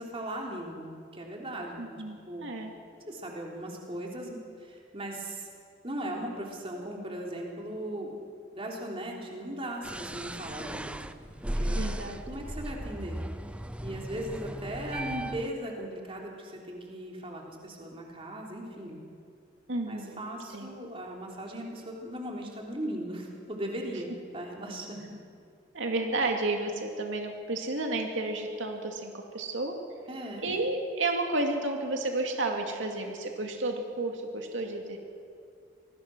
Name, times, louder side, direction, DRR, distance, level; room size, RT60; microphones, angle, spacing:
voice 1, 0.0-1.9 2.3-2.5 3.1-5.5 5.8-8.2 8.5-11.1 11.6-11.8 12.3-13.2 13.8-19.0 19.9-25.1 30.1-30.5, right 1 dB, 30° right, -1 dB, 3.5 m, -38 dB
voice 2, 1.8-2.7 11.7-12.2 19.7-20.2 20.5-20.7 25.7-29.8 30.4-35.0, right 2 dB, 85° right, 2 dB, 2.4 m, -31 dB
sound 1, 9.8-15.5, right 1 dB, 5° right, 0.5 m, -36 dB
26.0 x 20.0 x 6.2 m, 2.2 s
head